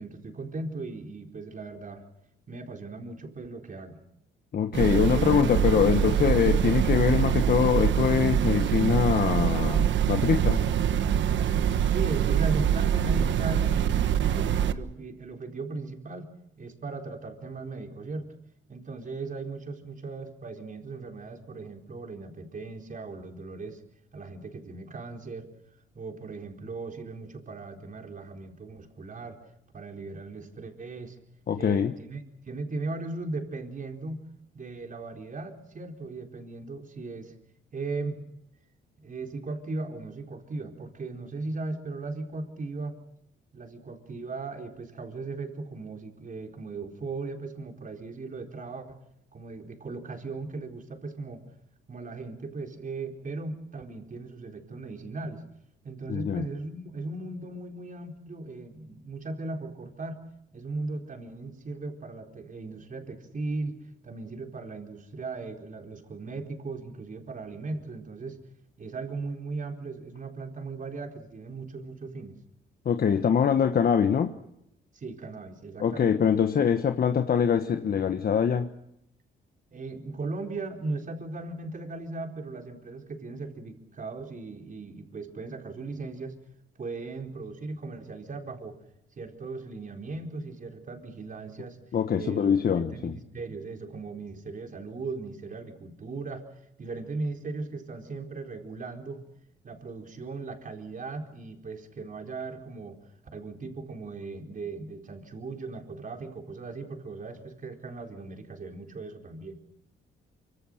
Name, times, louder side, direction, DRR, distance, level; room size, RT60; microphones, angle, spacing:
voice 1, 0.0-2.1 2.5-4.0 11.8-16.3 16.6-18.3 18.7-23.8 24.1-25.5 25.9-29.4 29.7-31.2 31.6-34.2 34.5-37.3 37.7-38.2 39.0-43.0 43.5-49.0 49.3-51.4 51.9-55.4 55.8-60.2 60.5-63.7 64.0-68.4 68.8-72.4 74.9-76.1 79.7-86.4 86.8-88.8 89.2-91.8 92.2-96.5 96.8-99.2 99.6-103.0 103.3-109.6, right 3 dB, 40° right, 4.3 m, -37 dB
voice 2, 4.5-10.6 31.5-32.0 56.1-56.5 72.8-74.3 75.8-78.7 91.9-93.2, left 7 dB, 50° left, 1.4 m, -24 dB
sound 1, 4.7-14.7, right 9 dB, 70° right, 1.3 m, -24 dB
25.0 x 24.5 x 6.6 m
cardioid pair, 90°, 20 cm